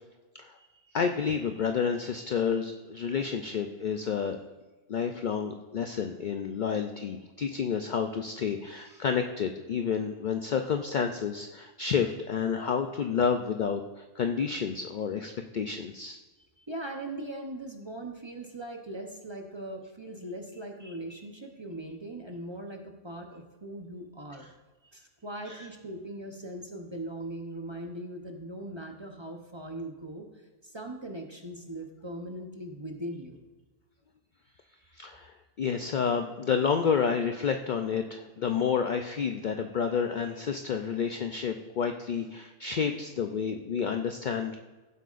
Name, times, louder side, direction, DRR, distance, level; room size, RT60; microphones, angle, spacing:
voice 1, 0.9-4.4 4.9-16.2 20.8-20.9 25.5-25.7 34.9-44.6, left 6 dB, 65° left, 6 dB, 0.4 m, -30 dB
voice 2, 16.6-24.5 24.9-30.3 30.6-33.4, right 1 dB, 25° right, 2 dB, 0.7 m, -40 dB
15.5 x 7.7 x 2.5 m, 1.2 s
omnidirectional pair, 1.4 m